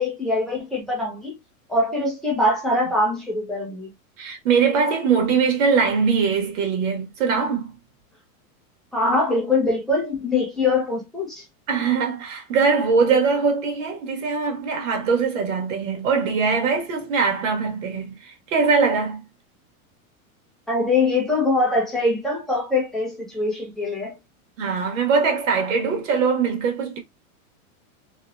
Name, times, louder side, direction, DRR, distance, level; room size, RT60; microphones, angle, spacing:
voice 1, 0.0-1.4 1.7-3.9 8.9-11.4 20.7-24.2, left 2 dB, ahead, 0.5 m, -23 dB
voice 2, 4.2-7.7 11.7-19.2 24.6-27.0, right 5 dB, 55° right, 1.6 m, -22 dB
3.1 x 3.0 x 2.4 m
supercardioid pair, 160°, 44 cm